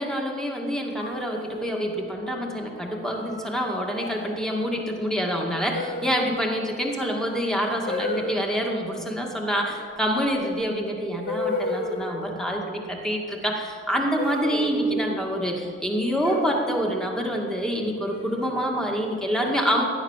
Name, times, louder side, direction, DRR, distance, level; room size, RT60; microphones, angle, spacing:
voice 1, 0.0-19.8, equal, 5° left, 0 dB, 2.2 m, -27 dB
sound 1, 1.0-1.9 3.1-3.5 4.0-4.3 5.7-6.4 7.9-8.5 10.4-10.5 11.3-12.2 14.2-15.3 16.2-16.9 18.1-18.7, left 2 dB, 50° left, 2.6 m, -32 dB
16.0 x 11.0 x 7.4 m, 2.3 s
head